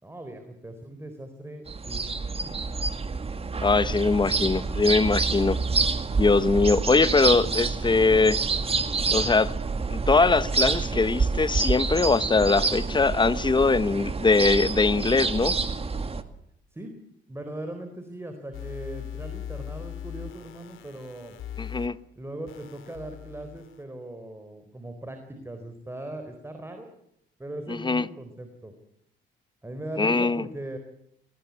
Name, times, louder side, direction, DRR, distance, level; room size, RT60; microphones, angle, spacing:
voice 1, 0.0-2.6 16.7-16.9 17.3-21.4 22.2-26.9 27.4-28.7 29.6-30.8, right 1 dB, 10° right, 4.0 m, -39 dB
sound 1, 1.7-16.2, right 4 dB, 30° right, 2.1 m, -27 dB
voice 2, 3.6-5.6 6.1-8.4 9.1-9.5 9.9-15.6 21.6-22.0 27.7-28.0 30.0-30.4, left 3 dB, 25° left, 1.1 m, -22 dB
sound 2, 18.5-21.9 22.5-23.8, left 9 dB, 80° left, 3.3 m, -39 dB
24.0 x 19.5 x 9.5 m
cardioid pair, 90°, 20 cm